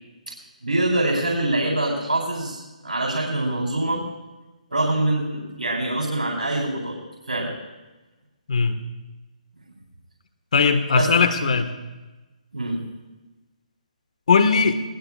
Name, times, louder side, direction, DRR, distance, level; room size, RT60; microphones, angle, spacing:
voice 1, 0.6-4.0 4.7-7.0 7.3-7.6 10.9-11.1 12.5-12.8, right 2 dB, 85° right, -2 dB, 4.1 m, -24 dB
voice 2, 10.5-11.7 14.3-14.8, left 5 dB, 60° left, 9 dB, 1.5 m, -19 dB
20.5 x 19.5 x 2.4 m, 1.1 s
figure-of-eight pair, 145°, 4 cm